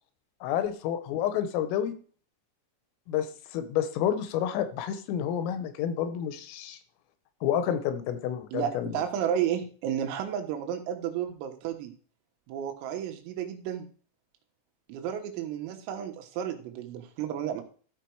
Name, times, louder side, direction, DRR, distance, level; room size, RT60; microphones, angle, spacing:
voice 1, 0.4-1.9 3.1-6.8 7.4-9.0, left 9 dB, 90° left, 10 dB, 3.7 m, -29 dB
voice 2, 8.5-11.9 12.5-13.9 14.9-17.6, right 9 dB, 90° right, 5 dB, 4.0 m, -32 dB
13.5 x 5.8 x 4.7 m, 0.41 s
omnidirectional pair, 5.9 m